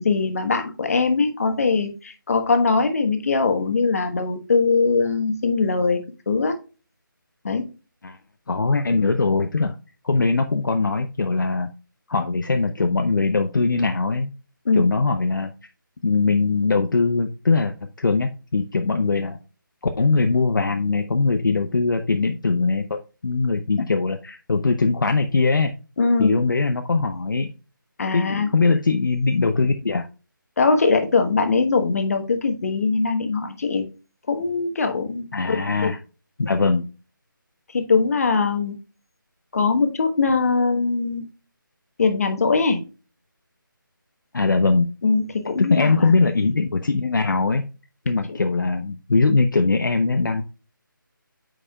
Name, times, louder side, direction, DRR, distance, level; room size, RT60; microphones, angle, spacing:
voice 1, 0.0-6.6 7.4-7.7 14.6-14.9 26.0-26.4 28.0-28.5 30.6-33.9 34.3-35.9 37.7-38.7 39.5-41.3 42.0-42.9 45.0-46.1 48.3-48.4, left 4 dB, 45° left, 7 dB, 1.2 m, -21 dB
voice 2, 8.5-9.8 10.0-11.7 12.1-14.3 14.7-15.5 16.0-19.4 20.0-22.8 23.2-25.7 26.2-27.5 28.1-30.1 35.3-36.0 36.4-36.9 44.3-44.9 45.6-47.6 48.1-50.4, left 4 dB, 65° left, 6 dB, 0.7 m, -21 dB
8.8 x 4.9 x 2.3 m, 0.32 s
figure-of-eight pair, 160°, 11 cm